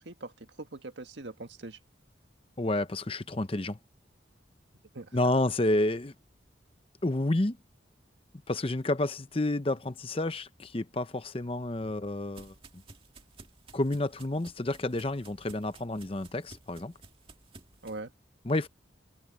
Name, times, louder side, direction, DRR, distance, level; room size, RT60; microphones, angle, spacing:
voice 1, 0.0-1.8 4.9-5.2 17.8-18.1, right 2 dB, 75° right, 1.7 m, -42 dB
voice 2, 2.6-3.8 5.1-6.1 7.0-7.6 8.5-12.5 13.7-16.9 18.5-18.7, left 2 dB, 30° left, 0.7 m, -30 dB
sound 1, 11.4-18.0, right 3 dB, 30° right, 2.1 m, -54 dB
head